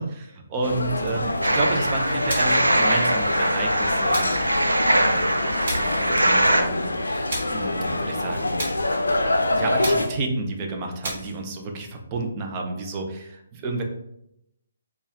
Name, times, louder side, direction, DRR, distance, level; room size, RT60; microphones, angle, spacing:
voice 1, 0.0-4.3 4.9-7.2 7.5-8.6 9.5-13.8, right 3 dB, 25° right, 2 dB, 0.6 m, -31 dB
sound 1, 0.6-10.1, left 2 dB, 75° left, 0.4 m, -25 dB
sound 2, 1.4-6.6, right 1 dB, 85° right, 0.5 m, -23 dB
sound 3, 2.3-2.7 4.1-4.5 5.6-6.0 7.3-7.7 8.6-8.9 9.8-10.2 11.0-11.4, right 1 dB, 50° right, 1.4 m, -33 dB
4.3 x 2.4 x 3.4 m, 0.80 s
figure-of-eight pair, 140°, 0 cm